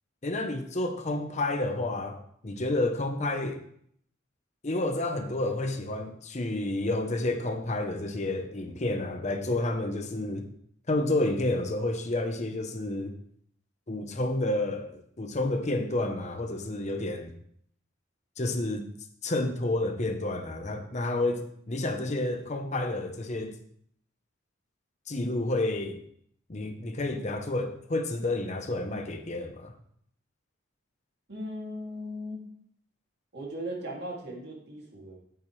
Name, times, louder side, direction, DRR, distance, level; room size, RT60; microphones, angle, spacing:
voice 1, 0.2-3.6 4.6-10.5 10.9-13.1 13.9-17.3 18.4-18.8 19.2-23.6 25.1-26.0 26.5-29.7, left 2 dB, 35° left, 6 dB, 0.8 m, -30 dB
voice 2, 31.3-32.5 33.3-35.2, equal, 55° right, -1 dB, 2.4 m, -38 dB
10.0 x 8.7 x 3.2 m, 0.66 s
head